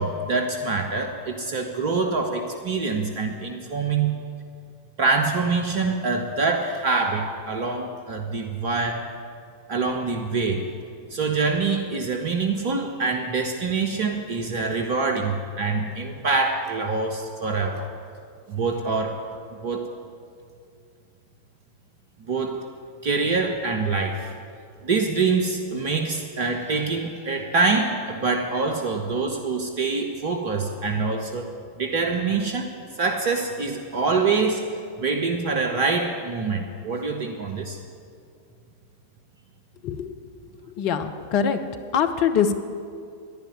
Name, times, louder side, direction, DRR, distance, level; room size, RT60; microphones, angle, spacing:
voice 1, 0.0-4.2 5.0-9.1 9.7-10.7 11.1-17.9 18.5-19.2 19.6-19.9 22.3-22.6 23.0-24.3 24.8-31.5 31.8-32.7 33.0-34.7 35.0-37.8, right 4 dB, 50° right, 4 dB, 1.2 m, -25 dB
voice 2, 39.8-40.1 40.8-41.6 41.9-42.6, left 7 dB, 45° left, 8 dB, 0.9 m, -23 dB
12.0 x 10.5 x 9.8 m, 2.4 s
figure-of-eight pair, 90°, 0 cm